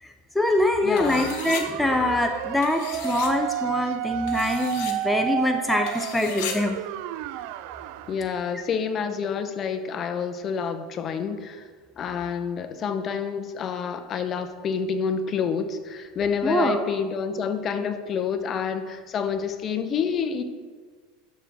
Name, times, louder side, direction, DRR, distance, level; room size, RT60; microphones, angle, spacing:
voice 1, 0.0-6.8 16.4-16.8, left 1 dB, 5° left, 4 dB, 0.5 m, -24 dB
voice 2, 0.8-1.4 8.1-11.7 12.0-20.4, left 6 dB, 35° left, 8 dB, 0.8 m, -28 dB
sound 1, 1.0-1.6 2.6-3.3 4.3-4.9 5.9-6.5, left 8 dB, 70° left, 1.3 m, -36 dB
sound 2, 1.0-8.2, right 13 dB, 65° right, 0.3 m, -31 dB
11.5 x 6.0 x 3.5 m, 1.6 s
supercardioid pair, 125°, 0 cm